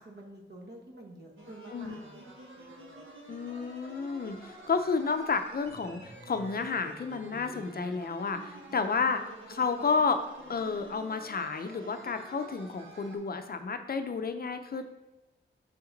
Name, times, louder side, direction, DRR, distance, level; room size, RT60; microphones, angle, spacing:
voice 1, 0.0-2.3, right 1 dB, 55° right, 1 dB, 1.3 m, -49 dB
sound 1, 1.4-13.2, right 1 dB, 75° right, 1.5 m, -48 dB
voice 2, 1.7-2.0 3.3-9.2 9.5-10.2 10.5-14.8, left 5 dB, 50° left, 7 dB, 0.5 m, -31 dB
6.5 x 5.8 x 3.9 m, 1.1 s
wide cardioid pair, 170°, 20 cm